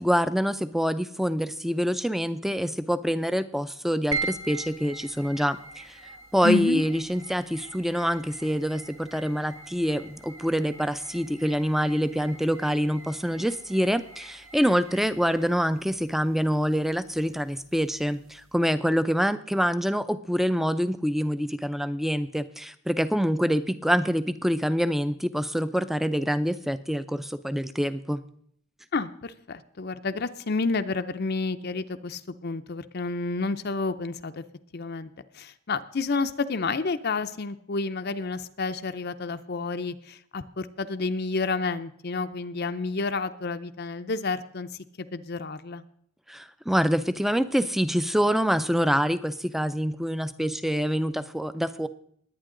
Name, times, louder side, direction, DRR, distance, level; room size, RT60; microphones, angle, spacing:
voice 1, 0.0-6.0 6.3-28.2 46.3-51.9, equal, ahead, 13 dB, 0.5 m, -26 dB
sound 1, 4.1-18.6, right 3 dB, 65° right, 1.4 m, -42 dB
voice 2, 6.4-6.8 28.9-34.4 34.7-44.7 45.0-45.8, left 3 dB, 45° left, 9 dB, 0.6 m, -30 dB
21.5 x 9.1 x 3.8 m, 0.65 s
head